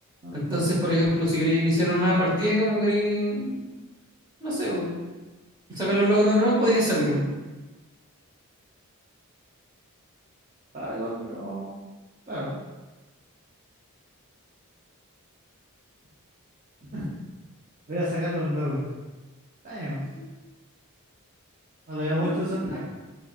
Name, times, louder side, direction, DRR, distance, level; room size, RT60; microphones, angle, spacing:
voice 1, 0.3-3.6 4.4-4.9 5.7-7.2 20.1-20.2 22.2-22.8, equal, 20° right, -7 dB, 1.2 m, -23 dB
voice 2, 10.7-11.7 12.3-12.5 16.9-17.1 17.9-18.9 19.6-20.0 21.9-22.8, equal, 35° right, -9 dB, 0.6 m, -29 dB
3.6 x 3.1 x 2.5 m, 1.2 s
head